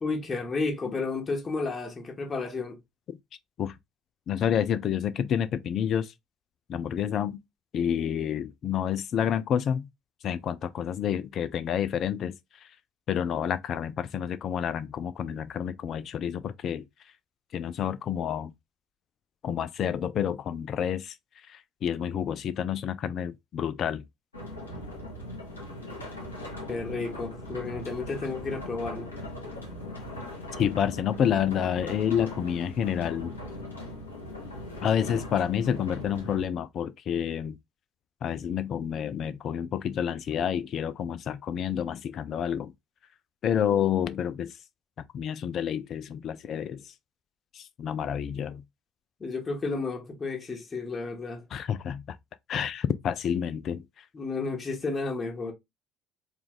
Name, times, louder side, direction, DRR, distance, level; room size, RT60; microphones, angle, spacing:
voice 1, 0.0-2.8 26.7-29.1 49.2-51.4 54.1-55.5, left 3 dB, 30° left, 1.3 m, -32 dB
voice 2, 4.3-6.1 6.7-7.4 7.7-9.9 10.2-12.4 12.6-12.7 13.1-16.9 17.5-18.5 19.4-21.1 21.5-24.0 30.6-33.3 34.8-37.6 38.2-42.7 43.4-44.6 45.1-46.8 47.5-48.6 51.5-52.2 52.5-54.0, left 9 dB, 45° left, 0.3 m, -29 dB
sound 1, 24.3-36.5, left 1 dB, 85° left, 1.1 m, -39 dB
4.5 x 2.4 x 3.8 m
figure-of-eight pair, 55°, 0 cm